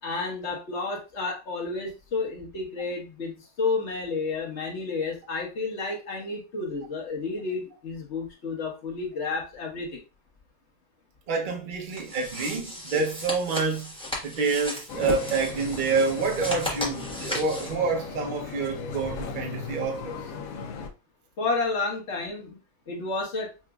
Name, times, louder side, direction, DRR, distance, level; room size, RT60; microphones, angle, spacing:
voice 1, 0.0-10.0 21.4-22.6 22.9-23.5, left 3 dB, 45° left, 1.2 m, -31 dB
voice 2, 11.3-13.9 14.2-20.2, right 4 dB, 55° right, 0.5 m, -27 dB
sound 1, 11.9-17.7, left 1 dB, 5° left, 0.8 m, -35 dB
sound 2, 14.9-20.9, left 5 dB, 65° left, 0.9 m, -37 dB
5.8 x 2.5 x 2.3 m
omnidirectional pair, 1.9 m